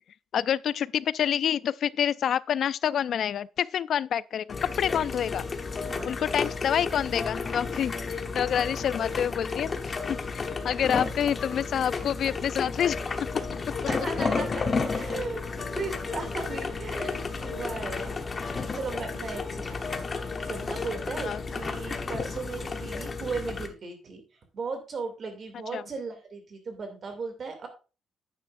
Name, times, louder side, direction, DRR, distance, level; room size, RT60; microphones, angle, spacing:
voice 1, 0.3-5.5 6.1-10.2 10.6-13.0 21.2-21.4 25.7-25.8, left 9 dB, 55° left, 0.3 m, -27 dB
sound 1, 4.5-23.7, left 4 dB, 25° left, 1.0 m, -32 dB
voice 2, 5.8-6.2 8.4-8.7 13.9-14.6 14.9-24.2 24.5-27.7, right 4 dB, 40° right, 2.6 m, -37 dB
sound 2, 14.8-23.1, left 1 dB, 10° left, 2.0 m, -51 dB
10.0 x 9.4 x 2.6 m
cardioid pair, 155°, 0 cm